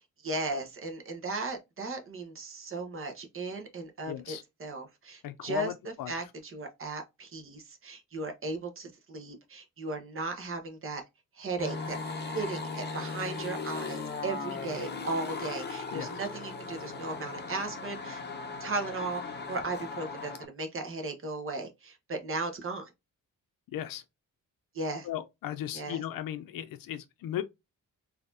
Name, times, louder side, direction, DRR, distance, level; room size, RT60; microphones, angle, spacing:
voice 1, 0.2-5.7 6.1-11.0 11.4-12.0 12.3-18.2 18.6-22.9 24.7-25.1 25.7-26.0, right 3 dB, 40° right, 1.0 m, -36 dB
voice 2, 4.1-4.4 5.2-6.1 15.9-16.3 23.7-24.0 25.0-27.4, left 11 dB, 85° left, 0.5 m, -36 dB
sound 1, 11.6-20.4, left 4 dB, 30° left, 0.7 m, -38 dB
4.0 x 2.8 x 2.5 m
wide cardioid pair, 145°, 33 cm